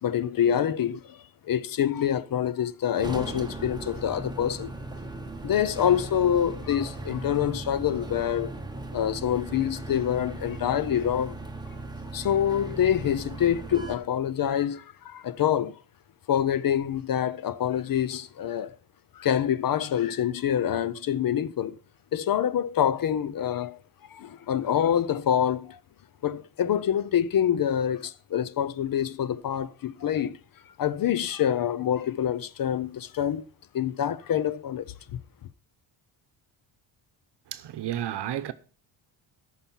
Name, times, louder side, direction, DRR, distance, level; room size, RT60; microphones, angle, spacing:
voice 1, 0.0-4.7 5.4-8.5 8.9-11.4 12.1-15.8 16.3-18.8 19.1-21.8 22.1-23.8 24.1-25.8 26.2-30.4 30.8-33.5 33.7-34.9, left 9 dB, 45° left, 0.6 m, -26 dB
sound 1, 3.0-14.0, right 2 dB, 10° right, 1.0 m, -38 dB
voice 2, 37.5-38.5, right 11 dB, 60° right, 0.9 m, -31 dB
13.5 x 5.7 x 5.6 m
wide cardioid pair, 155°, 47 cm